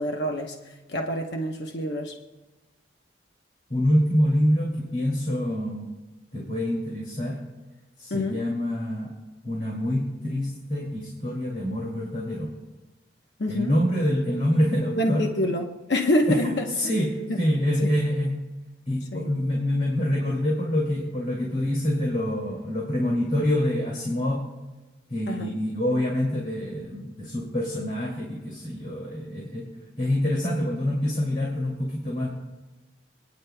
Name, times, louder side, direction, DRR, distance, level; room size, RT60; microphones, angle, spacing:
voice 1, 0.0-2.2 8.1-8.4 13.4-13.8 15.0-16.7 17.8-17.9 19.1-19.4 25.3-25.6, left 1 dB, 70° left, 2 dB, 1.0 m, -26 dB
voice 2, 3.7-5.9 6.3-7.4 8.0-9.2 9.4-12.5 13.5-15.3 16.3-18.4 18.9-24.5 25.1-29.7 30.0-32.3, equal, 45° left, -4 dB, 2.5 m, -26 dB
27.5 x 10.0 x 2.3 m, 1.1 s
head